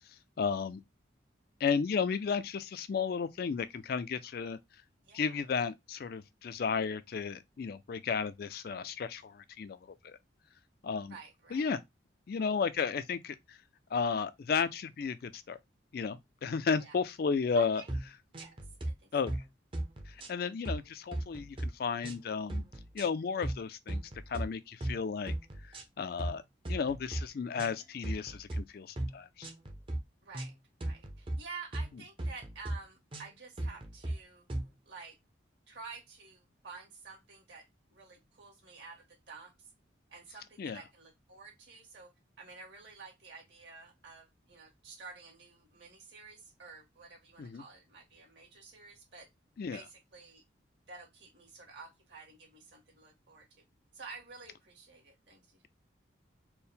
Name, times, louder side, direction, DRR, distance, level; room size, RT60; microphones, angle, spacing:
voice 1, 0.1-0.8 1.6-4.6 5.1-10.2 10.8-11.2 11.5-11.8 12.3-13.6 13.9-15.6 15.9-17.8 19.1-19.3 20.1-22.6 22.9-25.3 25.6-26.4 26.7-29.5 40.6-40.8 47.4-47.6 49.6-49.8, left 5 dB, 50° left, 0.3 m, -33 dB
voice 2, 5.0-5.4 11.1-11.7 16.8-16.9 17.5-17.9 18.3-18.6 18.8-19.1 30.2-30.5 30.8-34.4 34.8-35.2 35.7-37.6 37.9-39.7 40.1-42.1 42.4-49.3 49.7-50.4 50.9-53.6 53.9-55.6, right 4 dB, 65° right, 1.8 m, -50 dB
sound 1, 17.9-18.1 18.3-18.9 19.3-19.5 19.7-20.8 21.1-21.7 22.0-22.2 22.5-23.1 23.4-23.6 23.9-24.5 24.8-25.0 25.3-25.8 26.2-26.4 26.6-27.2 27.6-28.6 29.0-29.1 29.4-30.0 30.3-30.5 30.8-31.4 31.7-31.9 32.2-32.8 33.1-33.3 33.6-34.2 34.5-34.7, right 1 dB, 30° right, 0.6 m, -36 dB
4.4 x 2.1 x 3.4 m
head